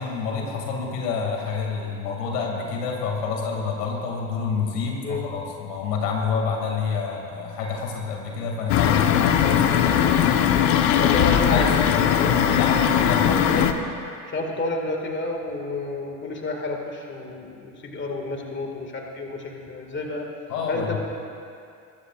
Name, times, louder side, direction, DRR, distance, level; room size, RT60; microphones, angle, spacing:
voice 1, 0.0-10.2 11.5-13.3 20.5-21.0, left 5 dB, 85° left, 0 dB, 2.5 m, -28 dB
sound 1, 8.7-13.7, left 9 dB, 60° left, 1.0 m, -19 dB
voice 2, 11.0-12.4 13.2-13.7 14.3-20.3 20.7-21.0, left 2 dB, 25° left, 1 dB, 2.0 m, -30 dB
22.0 x 14.0 x 2.5 m, 2.5 s
hypercardioid pair, 85°, 47 cm